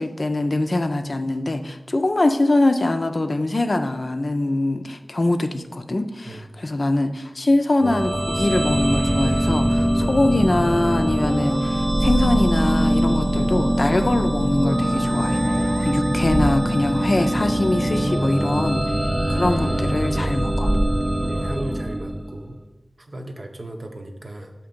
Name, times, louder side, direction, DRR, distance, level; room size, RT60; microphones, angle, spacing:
voice 1, 0.0-15.4 15.8-18.8 19.3-20.7, left 2 dB, 50° left, 7 dB, 0.5 m, -23 dB
sound 1, 7.8-22.5, right 1 dB, 25° right, 0.4 m, -22 dB
voice 2, 21.2-22.6 23.0-24.5, right 1 dB, 55° right, 4 dB, 0.7 m, -35 dB
6.9 x 2.9 x 5.1 m, 1.0 s
wide cardioid pair, 60°, 0 cm